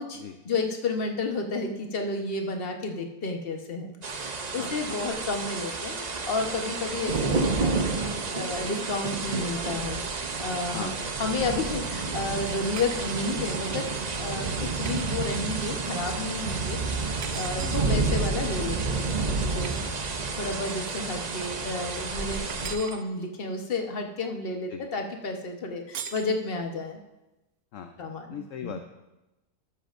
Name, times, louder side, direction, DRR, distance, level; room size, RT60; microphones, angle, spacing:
voice 1, 0.4-13.9 14.2-19.1 19.4-19.9 20.4-27.0 28.0-28.8, left 3 dB, 40° left, 3 dB, 1.2 m, -32 dB
sound 1, 4.0-22.8, right 4 dB, 40° right, 0.6 m, -30 dB
voice 2, 4.6-5.0 10.7-11.1 14.5-14.8 17.6-18.2 19.8-19.9 24.7-24.8 27.7-28.0 28.3-28.8, left 8 dB, 65° left, 6 dB, 1.0 m, -39 dB
sound 2, 12.7-13.2 14.8-15.1 17.2-17.9 19.6-19.9 22.5-23.0 25.9-26.3, right 7 dB, 75° right, 1.2 m, -39 dB
13.0 x 12.5 x 2.5 m, 1.0 s
omnidirectional pair, 1.6 m